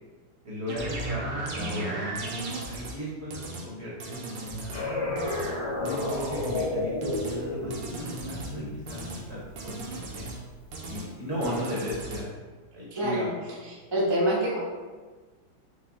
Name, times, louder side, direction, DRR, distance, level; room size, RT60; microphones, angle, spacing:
voice 1, 0.4-2.1 2.6-4.9 5.8-10.2 10.9-12.3 12.7-13.3, left 1 dB, 45° right, -6 dB, 0.9 m, -36 dB
sound 1, 0.7-3.0 3.3-3.7 4.0-4.8 5.2-5.5 5.9-6.7 7.0-7.4 7.7-8.5 8.9-9.2 9.6-10.4 10.7-11.1 11.4-12.2, right 2 dB, 70° right, 1.3 m, -36 dB
sound 2, 4.7-10.0, left 2 dB, 75° left, 2.1 m, -32 dB
voice 2, 12.9-13.3 13.7-14.6, right 1 dB, 30° right, -7 dB, 0.5 m, -26 dB
5.5 x 2.2 x 3.6 m, 1.4 s
omnidirectional pair, 2.2 m